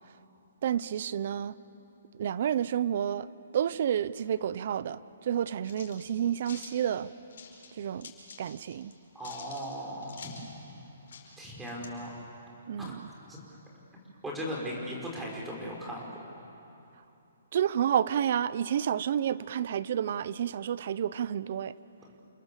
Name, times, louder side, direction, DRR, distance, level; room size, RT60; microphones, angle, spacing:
voice 1, 0.6-1.6 2.2-3.3 3.5-7.1 7.8-8.1 8.4-8.9 12.7-13.1 17.5-21.7, right 9 dB, 45° right, 17 dB, 0.7 m, -30 dB
sound 1, 5.6-6.7 7.3-7.7 8.0-8.9 9.2-10.5 10.8-10.9 11.1-11.9, left 6 dB, 60° left, 5.3 m, -48 dB
voice 2, 9.1-10.4 11.4-12.1 12.8-12.9 13.3-13.4 14.2-16.1, equal, 5° right, -3 dB, 5.0 m, -37 dB
29.0 x 27.0 x 7.6 m, 2.8 s
hypercardioid pair, 170°, 0 cm